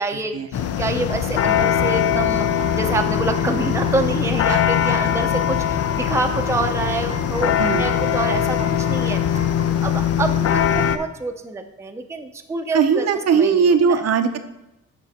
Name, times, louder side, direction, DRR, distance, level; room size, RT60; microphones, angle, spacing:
voice 1, 0.0-9.4 9.8-14.0, right 3 dB, 10° right, 5 dB, 0.6 m, -27 dB
sound 1, 0.5-11.0, left 9 dB, 55° left, 0.5 m, -21 dB
sound 2, 0.6-9.7, left 3 dB, 25° left, 1.1 m, -38 dB
voice 2, 12.7-14.4, right 6 dB, 55° right, 7 dB, 0.7 m, -18 dB
7.4 x 5.4 x 4.1 m, 0.93 s
cardioid pair, 90°, 30 cm